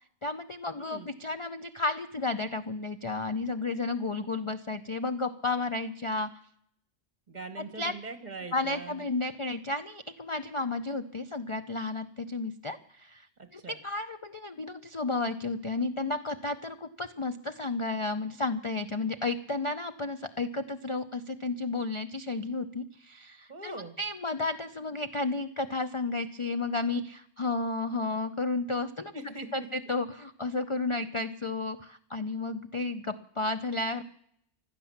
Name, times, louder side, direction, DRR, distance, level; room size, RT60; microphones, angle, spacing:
voice 1, 0.2-6.3 7.8-7.9 8.5-13.3 13.5-29.1 29.5-34.0, left 3 dB, 35° left, 9 dB, 0.5 m, -32 dB
voice 2, 0.7-1.1 7.3-9.0 13.4-13.8 23.5-24.0 29.1-29.7, right 3 dB, 40° right, 10 dB, 1.7 m, -42 dB
16.0 x 12.0 x 7.2 m, 0.67 s
omnidirectional pair, 1.2 m